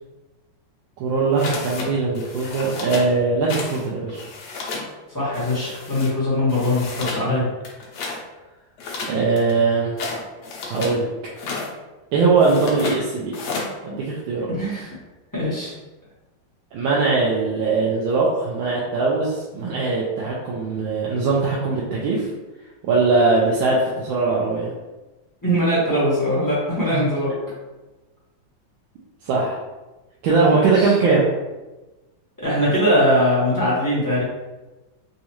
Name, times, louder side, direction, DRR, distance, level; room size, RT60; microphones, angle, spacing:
voice 1, 1.0-4.2 7.3-7.5 9.1-9.9 10.7-11.1 12.1-13.3 13.8-14.5 16.7-22.3 22.8-24.7 26.9-27.0 29.2-29.6 30.2-31.2, right 4 dB, 85° right, -5 dB, 1.4 m, -20 dB
sound 1, 1.4-1.9 2.1-3.1 3.5-3.8 4.1-4.9 5.3-6.1 6.5-7.2 7.6-8.2 8.8-11.0 11.3-11.7 12.4-13.0 13.3-13.7, left 4 dB, 70° left, 1.2 m, -31 dB
voice 2, 5.1-7.4 14.5-14.9 15.3-15.7 25.4-27.3 30.5-30.9 32.4-34.2, equal, 15° left, -9 dB, 0.7 m, -21 dB
4.0 x 2.4 x 2.9 m, 1.1 s
omnidirectional pair, 2.1 m